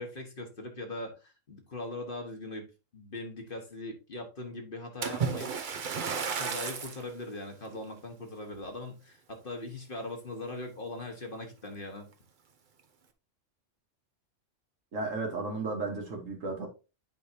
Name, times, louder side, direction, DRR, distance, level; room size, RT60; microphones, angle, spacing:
voice 1, 0.0-2.6 2.9-5.5 6.3-12.1, left 2 dB, 45° left, 1.4 m, -40 dB
Splash splatter, 5.0-7.1 7.7-7.9 8.5-8.6, right 6 dB, 45° right, 0.8 m, -33 dB
voice 2, 14.9-16.7, right 3 dB, 85° right, 1.8 m, -34 dB
8.9 x 4.9 x 2.8 m
omnidirectional pair, 1.3 m